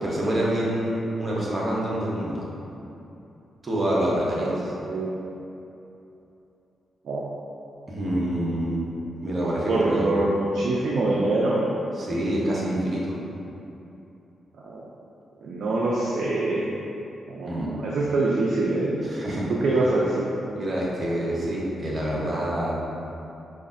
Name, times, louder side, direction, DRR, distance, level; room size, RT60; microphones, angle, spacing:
voice 1, 0.0-2.4 3.6-4.5 7.9-8.9 9.2-10.2 12.0-13.2 17.5-17.7 19.0-19.5 20.5-22.7, right 1 dB, 40° right, -5 dB, 0.9 m, -26 dB
voice 2, 4.8-5.1 7.0-7.2 9.7-11.6 12.1-13.0 14.6-14.8 15.4-16.7 17.3-17.5 17.8-18.9 19.5-20.3, right 2 dB, 70° right, -4 dB, 0.4 m, -25 dB
4.9 x 2.4 x 2.5 m, 2.9 s
cardioid pair, 70°, 0 cm